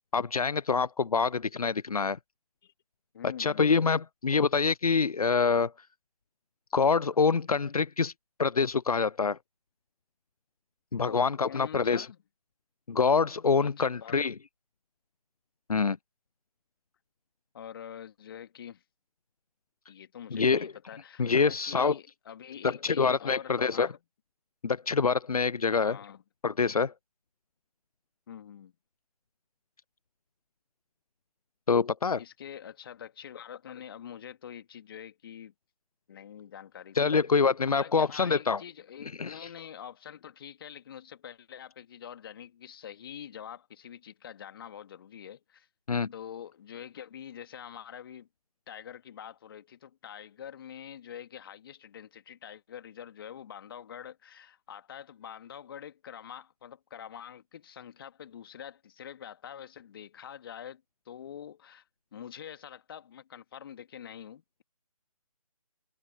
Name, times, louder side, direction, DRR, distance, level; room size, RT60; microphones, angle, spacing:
voice 1, 0.1-2.2 3.4-5.7 6.7-8.1 8.4-9.4 10.9-12.1 12.9-14.3 15.7-16.0 20.3-20.7 21.2-21.9 22.6-23.9 24.6-26.0 26.4-26.9 31.7-32.2 37.0-38.6 39.2-39.5 45.9-46.1, left 5 dB, 80° left, 0.7 m, -26 dB
voice 2, 3.1-3.8 11.0-12.2 13.6-14.2 17.5-18.8 19.9-24.0 25.7-26.2 28.3-28.7 32.2-35.5 36.1-37.2 37.7-45.7 46.1-48.3 48.7-61.8 62.1-64.6, left 9 dB, 40° left, 2.3 m, -45 dB
figure-of-eight pair, 150°, 19 cm